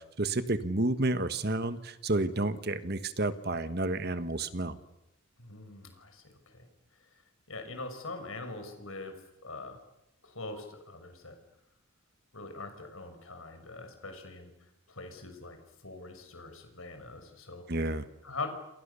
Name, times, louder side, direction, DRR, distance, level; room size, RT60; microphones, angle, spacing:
voice 1, 0.0-4.8 17.7-18.1, right 2 dB, 45° right, 11 dB, 1.4 m, -30 dB
voice 2, 5.4-6.7 7.5-9.8 10.2-11.4 12.3-14.5 14.9-15.6 15.8-17.6 18.2-18.5, left 3 dB, 70° left, 6 dB, 6.0 m, -43 dB
28.5 x 27.5 x 7.0 m, 0.89 s
head